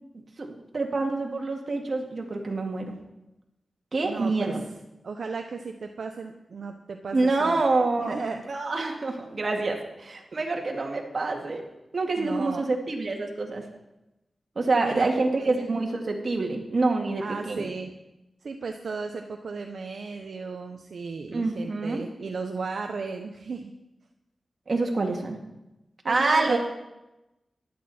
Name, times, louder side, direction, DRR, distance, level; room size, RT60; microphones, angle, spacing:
voice 1, 0.4-2.9 3.9-4.6 7.1-8.2 8.5-11.6 11.9-13.6 14.6-17.7 21.3-22.0 24.7-25.4 26.0-26.6, right 3 dB, 55° right, 1 dB, 2.3 m, -26 dB
voice 2, 4.0-4.6 5.0-7.6 8.1-8.5 12.2-12.7 14.8-15.7 17.2-17.9 18.4-23.7 26.0-26.6, right 4 dB, 80° right, 5 dB, 0.8 m, -35 dB
15.0 x 11.5 x 4.4 m, 0.96 s
cardioid pair, 60°, 0 cm